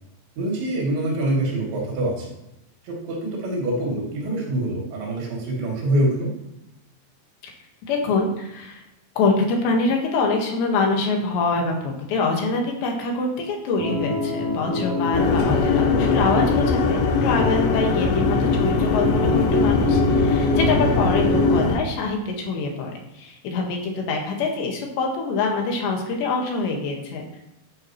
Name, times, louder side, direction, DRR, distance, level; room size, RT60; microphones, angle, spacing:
voice 1, 0.4-2.3 2.9-6.3 15.3-15.6, right 1 dB, 75° right, -3 dB, 5.3 m, -25 dB
voice 2, 7.9-8.8 9.2-27.3, left 3 dB, 70° left, 1 dB, 3.7 m, -25 dB
sound 1, 13.8-21.7, left 2 dB, 30° right, 1.0 m, -25 dB
sound 2, 15.1-21.8, left 4 dB, 85° left, 3.4 m, -22 dB
11.5 x 9.9 x 3.2 m, 0.90 s
omnidirectional pair, 5.4 m